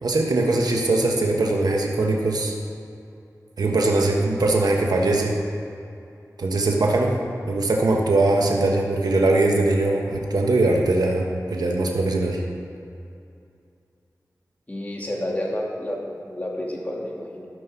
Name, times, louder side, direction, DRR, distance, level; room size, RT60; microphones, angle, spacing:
voice 1, 0.0-2.5 3.6-5.4 6.4-7.1 7.5-12.4, right 2 dB, 85° right, 0 dB, 1.2 m, -21 dB
voice 2, 14.7-17.5, left 1 dB, 25° left, -3 dB, 2.7 m, -30 dB
13.0 x 5.6 x 5.8 m, 2.6 s
cardioid pair, 40°, 7 cm